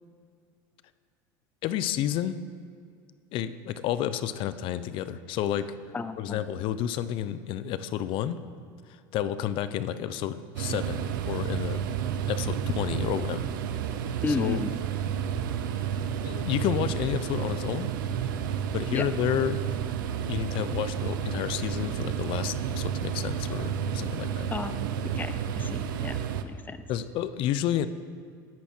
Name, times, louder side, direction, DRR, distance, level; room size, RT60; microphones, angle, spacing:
voice 1, 1.6-2.4 3.3-5.7 6.2-8.4 8.9-11.8 12.3-13.5 14.3-14.6 16.2-17.9 18.7-19.6 20.3-24.5 26.9-27.9, left 11 dB, 55° left, 13 dB, 0.7 m, -30 dB
voice 2, 5.9-6.4 14.2-14.8 18.9-19.0 24.5-26.9, left 4 dB, 15° left, 11 dB, 0.8 m, -33 dB
sound 1, 10.5-26.4, right 8 dB, 85° right, 0.8 m, -31 dB
19.0 x 10.5 x 4.5 m, 2.2 s
supercardioid pair, 110°, 11 cm